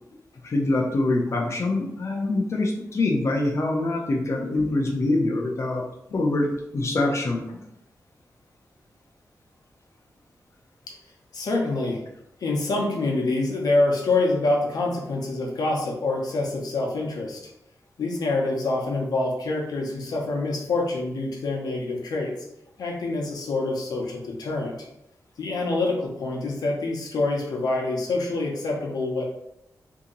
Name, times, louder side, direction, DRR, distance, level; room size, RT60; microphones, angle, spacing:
voice 1, 0.4-5.8 6.1-7.6, left 2 dB, 45° left, -1 dB, 0.6 m, -24 dB
voice 2, 11.3-12.0 12.4-17.4 18.0-22.3 22.8-24.8 25.4-29.2, left 2 dB, 85° left, 0 dB, 0.9 m, -26 dB
2.9 x 2.7 x 3.8 m, 0.81 s
wide cardioid pair, 140°, 7 cm